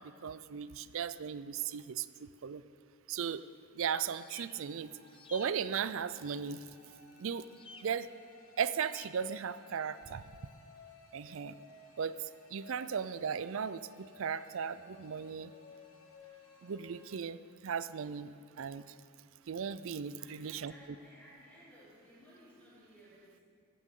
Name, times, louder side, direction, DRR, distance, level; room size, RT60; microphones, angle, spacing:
voice 1, 0.0-2.6 3.1-3.4 3.7-4.9 5.3-6.6 7.2-7.4 7.8-8.1 8.6-10.2 11.1-11.5 12.0-15.5 16.6-18.9 19.5-20.7, right 7 dB, 65° right, 15 dB, 0.4 m, -37 dB
sound 1, 4.1-4.5 5.1-5.5 7.5-7.8 8.8-9.1, left 4 dB, 25° left, 0.6 m, -52 dB
sound 2, 4.6-17.2, left 4 dB, 75° left, 1.3 m, -58 dB
voice 2, 20.2-23.4, equal, 10° left, -11 dB, 3.7 m, -58 dB
16.0 x 14.5 x 3.8 m, 2.3 s
head